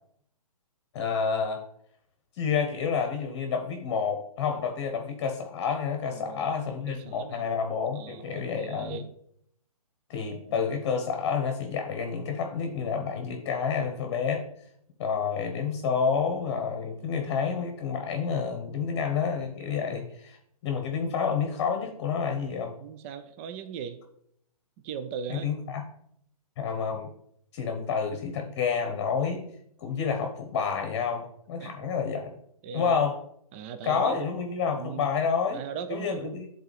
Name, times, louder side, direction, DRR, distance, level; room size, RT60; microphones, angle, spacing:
voice 1, 0.9-1.6 2.4-9.0 10.1-14.4 15.0-20.4 20.6-22.7 25.3-25.8 26.6-27.1 27.5-29.4 29.8-32.3 32.7-33.2 33.8-35.6 35.9-36.5, left 6 dB, 35° left, 4 dB, 0.9 m, -29 dB
voice 2, 6.1-6.5 6.9-7.5 7.9-9.1 10.3-10.7 22.8-24.0 24.8-25.5 31.6-31.7 32.6-33.1 33.5-34.3 34.8-35.1 35.5-36.5, right 7 dB, 20° right, 10 dB, 0.3 m, -38 dB
9.8 x 3.9 x 3.3 m, 0.70 s
figure-of-eight pair, 135°, 19 cm